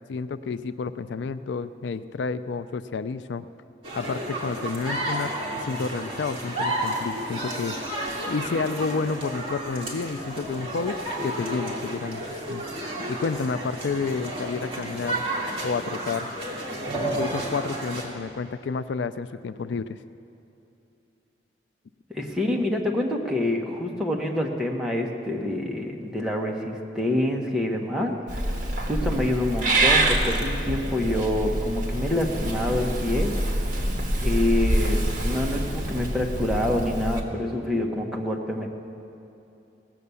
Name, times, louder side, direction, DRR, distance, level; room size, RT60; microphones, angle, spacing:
voice 1, 0.1-3.5 4.0-5.4 5.6-7.8 8.3-11.0 11.2-12.6 13.1-15.2 15.6-16.3 17.1-20.0, left 4 dB, 80° left, 12 dB, 0.4 m, -30 dB
sound 1, 3.8-18.1, right 1 dB, 30° right, 2.0 m, -31 dB
voice 2, 22.1-28.1 28.8-33.3 34.2-38.7, left 1 dB, 5° right, -1 dB, 1.1 m, -26 dB
Purr / Meow, 28.3-37.2, right 1 dB, 50° right, 1.4 m, -26 dB
18.0 x 7.5 x 6.9 m, 2.9 s
head